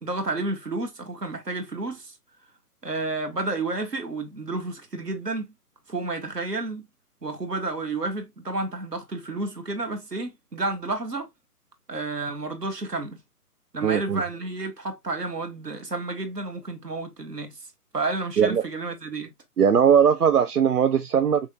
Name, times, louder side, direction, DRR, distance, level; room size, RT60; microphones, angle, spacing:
voice 1, 0.0-2.1 2.8-5.5 5.9-6.9 7.2-11.3 11.9-13.2 13.7-17.6 17.9-19.3, right 2 dB, 90° right, 1.8 m, -31 dB
voice 2, 13.8-14.2 18.4-18.6 19.6-21.4, right 7 dB, 70° right, 0.8 m, -19 dB
5.4 x 3.5 x 2.4 m
figure-of-eight pair, 140°, 47 cm